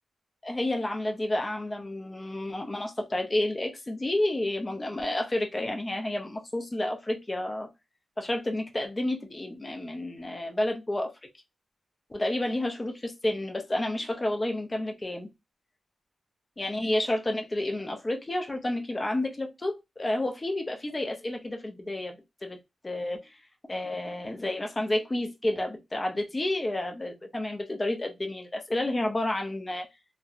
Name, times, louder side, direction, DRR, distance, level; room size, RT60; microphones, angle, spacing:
voice 1, 0.4-7.7 8.2-11.1 12.1-15.3 16.6-22.2 22.4-22.6 22.8-23.3 23.7-29.9, left 1 dB, 25° left, 0.5 m, -30 dB
2.8 x 2.1 x 2.3 m
wide cardioid pair, 105°, 0 cm